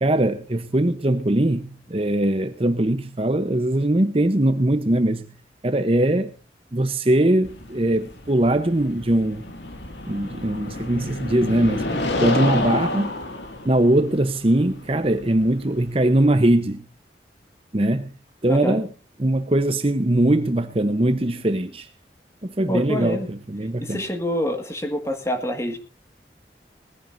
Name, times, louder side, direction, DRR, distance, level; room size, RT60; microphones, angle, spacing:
voice 1, 0.0-5.3 5.6-6.3 6.7-9.4 10.1-11.8 12.2-13.1 13.6-16.9 17.7-18.1 18.4-18.9 19.2-21.9 22.4-24.0, right 1 dB, 30° right, 0.9 m, -21 dB
sound 1, 7.4-16.3, left 2 dB, 85° left, 2.3 m, -30 dB
voice 2, 18.5-18.8 22.7-23.3 23.8-25.8, equal, 15° left, 1.9 m, -26 dB
20.5 x 15.5 x 2.7 m
head